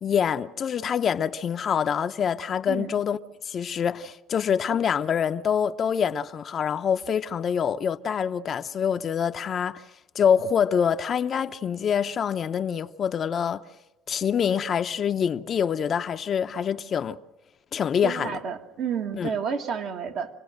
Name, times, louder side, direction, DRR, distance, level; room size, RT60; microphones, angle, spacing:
voice 1, 0.0-3.2 3.4-9.8 10.1-13.6 14.1-17.2 17.7-18.3 19.2-19.3, left 7 dB, 45° left, 0.7 m, -25 dB
voice 2, 18.0-20.3, right 7 dB, 60° right, 1.7 m, -30 dB
27.5 x 18.0 x 6.5 m
supercardioid pair, 100°, 0 cm